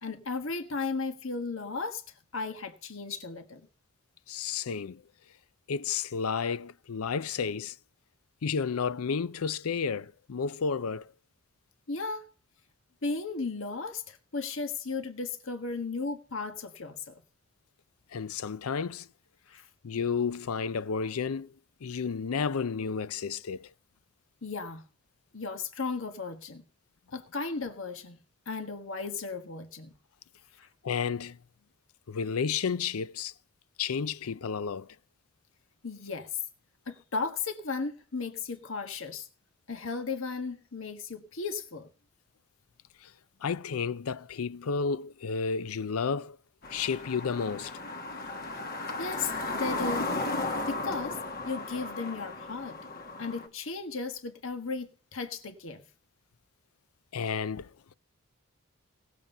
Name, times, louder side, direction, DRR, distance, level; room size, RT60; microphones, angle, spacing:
voice 1, 0.0-2.0 2.3-3.7 11.9-12.3 13.0-17.2 19.5-19.7 24.4-24.8 25.3-26.6 27.1-28.2 28.5-29.9 30.6-30.7 35.8-36.4 36.9-39.3 39.7-41.9 48.5-48.6 49.0-50.1 50.7-51.2 51.4-52.8 53.2-55.8, left 4 dB, 65° left, 1.4 m, -35 dB
voice 2, 4.3-5.0 5.7-7.8 8.4-11.1 18.1-19.1 19.8-21.5 21.8-23.7 30.8-31.4 32.1-33.3 33.8-35.0 43.0-43.1 43.4-46.4 46.7-47.7 57.1-57.7, left 5 dB, 85° left, 0.5 m, -31 dB
sound 1, 46.6-53.5, left 2 dB, 45° left, 1.5 m, -35 dB
18.5 x 7.5 x 5.5 m
head